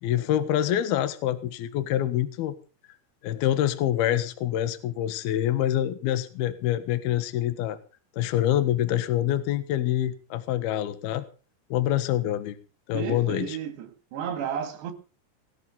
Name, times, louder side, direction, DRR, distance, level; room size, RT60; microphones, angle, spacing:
voice 1, 0.0-2.5 3.2-7.8 8.2-11.2 11.7-12.6 12.9-13.6, left 12 dB, 65° left, 2.7 m, -26 dB
voice 2, 12.9-14.9, right 8 dB, 60° right, 4.1 m, -32 dB
20.0 x 12.0 x 5.4 m
omnidirectional pair, 6.0 m